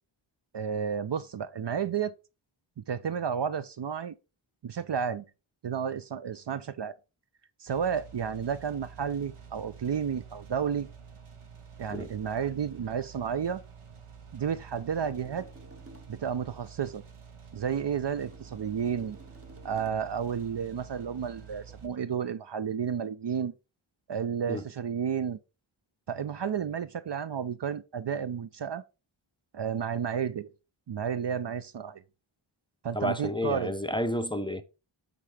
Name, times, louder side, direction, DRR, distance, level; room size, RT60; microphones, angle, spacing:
voice 1, 0.5-2.1 2.8-4.1 4.6-5.3 5.6-7.0 7.6-10.9 11.8-13.6 14.3-15.5 16.1-17.0 17.5-19.2 19.6-23.5 24.1-25.4 26.1-28.8 29.5-30.5 30.9-32.0 32.8-33.7, right 7 dB, 55° right, 0.5 m, -32 dB
sound 1, 7.7-21.9, right 6 dB, 80° right, 1.2 m, -49 dB
sound 2, 15.0-16.2 18.2-20.1, equal, 25° right, 1.3 m, -53 dB
voice 2, 32.9-34.6, left 1 dB, 10° left, 0.6 m, -31 dB
7.5 x 3.6 x 4.8 m
wide cardioid pair, 60°, 50 cm